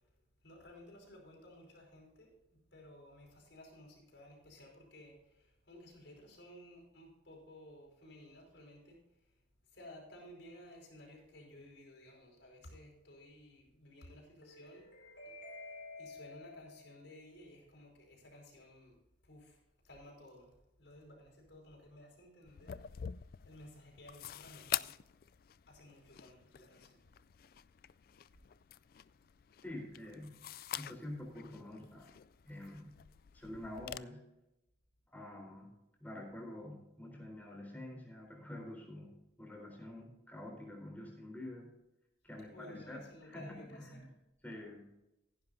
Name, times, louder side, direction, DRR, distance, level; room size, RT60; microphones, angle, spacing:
voice 1, 0.4-9.0 9.7-19.0 19.2-19.6 19.8-20.5 20.8-22.8 23.4-24.9 25.7-27.0 42.5-44.0, left 1 dB, 80° left, -1 dB, 5.0 m, -55 dB
sound 1, 22.5-34.0, left 11 dB, 50° left, 0.3 m, -46 dB
voice 2, 29.6-30.4 30.8-32.1 32.5-32.9 33.3-34.2 35.1-35.7 36.0-39.1 39.4-41.7 42.2-44.1 44.4-44.8, left 1 dB, 10° left, -1 dB, 3.8 m, -47 dB
16.0 x 10.5 x 2.7 m, 0.91 s
head